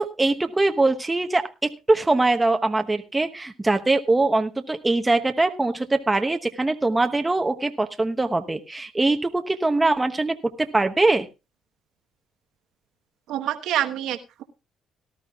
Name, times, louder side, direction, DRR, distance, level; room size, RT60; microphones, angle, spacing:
voice 1, 0.0-11.3, right 2 dB, 15° right, 6 dB, 1.0 m, -22 dB
voice 2, 13.3-14.4, right 11 dB, 75° right, 6 dB, 1.2 m, -27 dB
18.0 x 12.5 x 2.4 m, 0.28 s
supercardioid pair, 80°, 0 cm